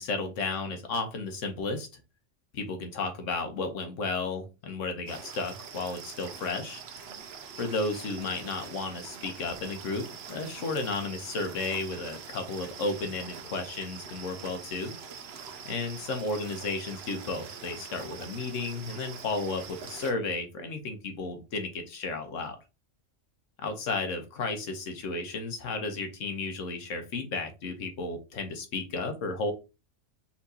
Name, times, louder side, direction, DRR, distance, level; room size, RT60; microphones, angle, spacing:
voice 1, 0.0-1.9 2.5-6.8 7.6-15.0 15.6-22.6 23.6-29.5, left 3 dB, 85° left, 6 dB, 1.3 m, -33 dB
sound 1, 5.1-20.1, right 6 dB, 60° right, 0.9 m, -44 dB
4.3 x 3.6 x 2.8 m, 0.28 s
omnidirectional pair, 1.3 m